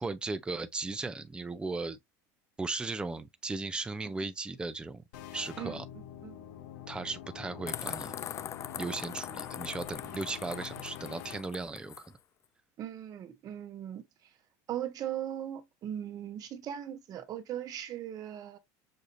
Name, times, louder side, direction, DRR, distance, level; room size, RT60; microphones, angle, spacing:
voice 1, 0.0-2.0 2.6-5.0 5.3-5.8 6.9-8.1 8.8-12.1, right 3 dB, 10° right, 0.6 m, -36 dB
sound 1, 5.1-11.4, left 11 dB, 80° left, 0.9 m, -45 dB
voice 2, 5.6-6.4 12.8-14.0 14.7-18.6, right 11 dB, 45° right, 1.3 m, -39 dB
sound 2, 7.7-12.1, left 10 dB, 30° left, 0.4 m, -41 dB
6.4 x 2.7 x 2.7 m
supercardioid pair, 120°, 9 cm